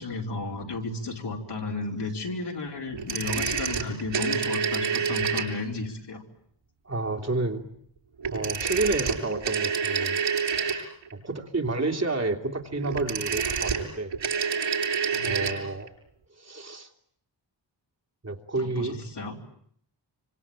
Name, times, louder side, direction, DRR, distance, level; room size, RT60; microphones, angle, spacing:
voice 1, 0.0-6.2 15.1-15.6 18.6-19.3, left 3 dB, 65° left, 0 dB, 4.9 m, -33 dB
sound 1, 2.9-5.8 8.2-11.1 12.8-15.6 15.9-16.0, right 6 dB, 80° right, 7.7 m, -28 dB
voice 2, 6.8-7.6 8.3-10.2 10.5-10.8 11.1-14.1 15.2-15.9 16.4-16.9 18.2-19.0, right 2 dB, 35° right, 3 dB, 3.1 m, -30 dB
26.0 x 26.0 x 8.9 m, 0.68 s
wide cardioid pair, 85°, 45 cm